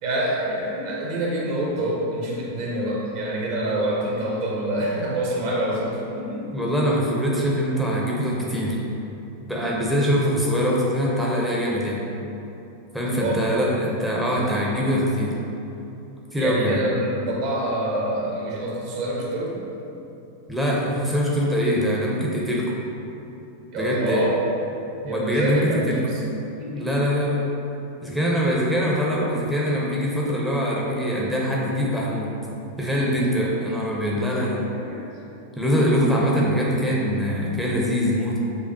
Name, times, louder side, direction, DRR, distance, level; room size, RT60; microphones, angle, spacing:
voice 1, 0.0-6.5 13.0-13.4 16.3-19.6 23.7-24.3 25.0-26.1 26.6-26.9 34.3-34.4 34.7-35.0, right 1 dB, 50° right, -3 dB, 0.8 m, -26 dB
voice 2, 6.5-8.8 9.5-12.0 12.9-15.3 16.3-16.8 20.5-22.6 23.7-24.2 25.0-26.0 26.7-27.4 28.0-32.3 32.8-34.6 35.6-38.4, equal, 5° right, -5 dB, 0.5 m, -23 dB
6.5 x 2.3 x 2.7 m, 2.9 s
figure-of-eight pair, 90°, 0 cm